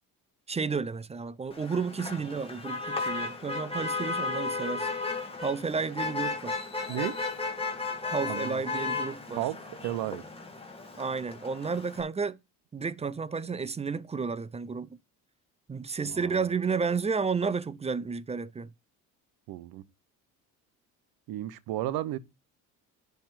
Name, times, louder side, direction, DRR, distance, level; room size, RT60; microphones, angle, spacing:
voice 1, 0.5-4.9 5.4-6.6 8.1-9.4 11.0-12.4 12.7-14.9 15.7-18.7, right 5 dB, 15° right, 0.5 m, -32 dB
Motor vehicle (road), 1.5-12.0, left 3 dB, 15° left, 2.1 m, -34 dB
voice 2, 8.3-8.6 9.3-9.6 9.8-10.2 16.0-16.5 19.5-19.8 21.3-22.2, right 13 dB, 75° right, 0.9 m, -33 dB
10.5 x 3.5 x 5.8 m
supercardioid pair, 90°, 37 cm